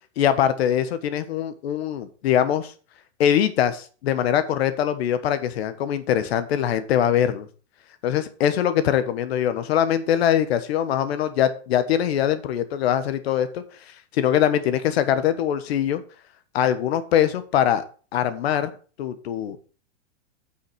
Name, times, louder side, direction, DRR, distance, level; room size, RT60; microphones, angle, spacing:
voice 1, 0.2-2.7 3.2-7.5 8.0-13.6 14.1-16.0 16.5-17.8 18.1-18.7 19.0-19.7, left 10 dB, 60° left, 12 dB, 1.4 m, -22 dB
8.5 x 5.8 x 6.2 m, 0.39 s
supercardioid pair, 170°, 36 cm